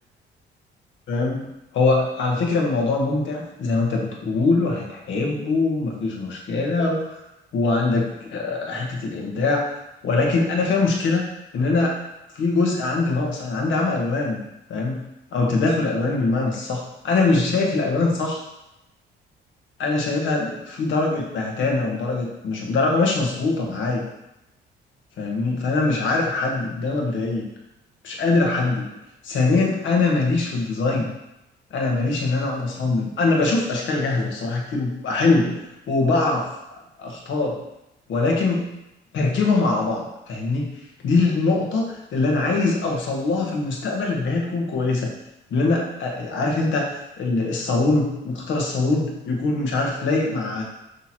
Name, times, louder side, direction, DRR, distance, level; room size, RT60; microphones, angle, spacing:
voice 1, 1.1-1.5 1.7-7.2 7.5-11.2 11.5-12.0 12.3-14.4 14.7-15.0 15.3-18.4 19.8-24.1 25.2-27.4 28.0-28.9 29.2-31.1 31.7-35.6 35.9-36.5 37.0-37.6 38.1-38.7 39.1-40.7 41.0-45.1 45.5-50.6, left 3 dB, 75° left, 0 dB, 1.5 m, -22 dB
6.1 x 3.6 x 4.3 m, 0.90 s
cardioid pair, 90°, 20 cm